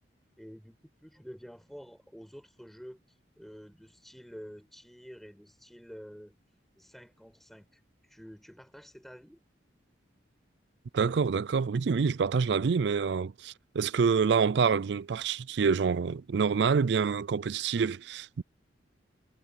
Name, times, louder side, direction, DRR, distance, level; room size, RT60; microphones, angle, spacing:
voice 1, 0.4-6.3 6.8-9.4, equal, ahead, 8.0 m, -49 dB
voice 2, 10.9-18.4, right 5 dB, 65° right, 0.4 m, -27 dB
head